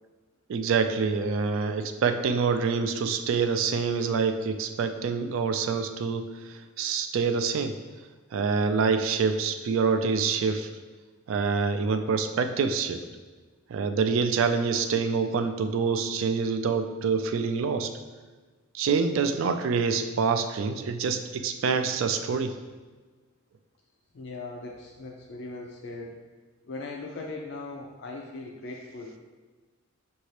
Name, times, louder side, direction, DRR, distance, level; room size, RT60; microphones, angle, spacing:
voice 1, 0.5-7.7 8.3-10.7 11.3-13.0 13.7-17.9 18.7-22.5, right 5 dB, 70° right, 8 dB, 0.3 m, -26 dB
voice 2, 24.1-26.2 26.7-29.2, left 3 dB, 55° left, -2 dB, 0.4 m, -39 dB
5.7 x 2.7 x 3.1 m, 1.3 s
head